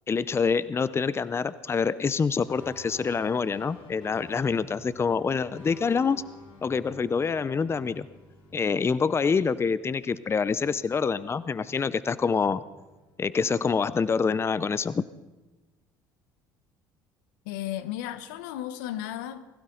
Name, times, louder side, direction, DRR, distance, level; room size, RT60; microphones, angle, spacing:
voice 1, 0.1-6.2 6.6-8.1 8.5-12.6 13.2-15.0, left 5 dB, 25° left, 0.6 m, -26 dB
sound 1, 2.4-10.3 10.5-12.1 12.5-14.1, left 3 dB, 65° left, 5.1 m, -51 dB
voice 2, 17.4-19.4, left 12 dB, 80° left, 1.0 m, -34 dB
20.5 x 16.0 x 3.9 m
hypercardioid pair, 75°, 10 cm